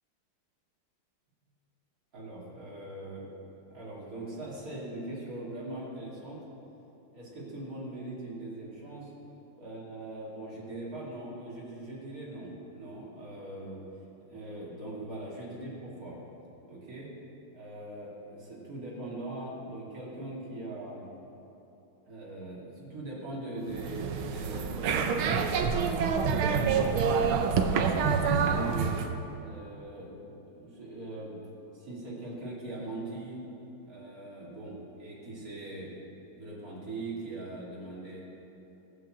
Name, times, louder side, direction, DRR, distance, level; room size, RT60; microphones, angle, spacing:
voice 1, 2.1-6.4 7.1-9.1 9.6-13.8 14.3-16.2 16.6-17.1 17.5-21.1 22.0-26.0 26.6-28.9 29.4-31.4 31.7-33.4 33.8-35.9 36.4-38.2, right 2 dB, 40° right, -6 dB, 3.1 m, -41 dB
sound 1, 23.7-29.1, right 6 dB, 85° right, 1.6 m, -27 dB
15.0 x 6.7 x 7.7 m, 2.9 s
omnidirectional pair, 2.3 m